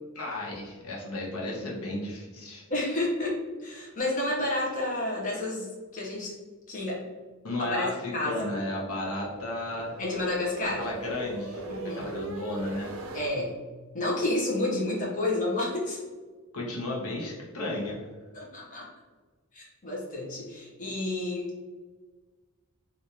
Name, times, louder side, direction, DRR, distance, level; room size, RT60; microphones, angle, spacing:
voice 1, 0.1-2.6 7.4-10.0 10.8-11.6 12.0-12.9 16.5-18.1, left 2 dB, 85° left, -3 dB, 0.8 m, -33 dB
voice 2, 2.7-3.4 3.6-6.3 6.7-7.0 7.7-8.5 10.0-10.8 11.7-12.1 13.1-13.6 13.9-16.0 18.3-18.8 19.5-21.5, left 2 dB, 35° left, -5 dB, 0.8 m, -30 dB
sound 1, 8.7-13.3, right 2 dB, 65° right, 0.4 m, -40 dB
3.5 x 2.5 x 2.8 m, 1.4 s
head